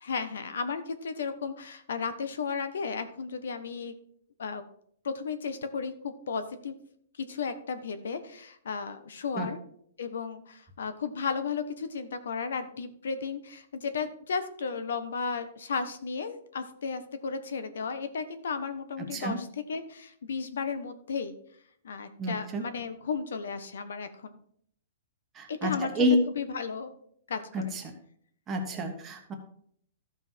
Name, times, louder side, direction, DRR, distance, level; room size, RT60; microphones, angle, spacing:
voice 1, 0.0-3.9 4.4-4.6 5.0-6.7 7.2-9.6 10.0-21.4 21.8-24.4 25.5-26.9 27.3-27.8, left 5 dB, 85° left, 10 dB, 1.2 m, -34 dB
voice 2, 22.2-22.6 25.4-26.2 27.5-27.6 28.5-29.3, equal, 15° right, 2 dB, 1.2 m, -28 dB
13.5 x 5.6 x 4.5 m, 0.65 s
hypercardioid pair, 170°, 0 cm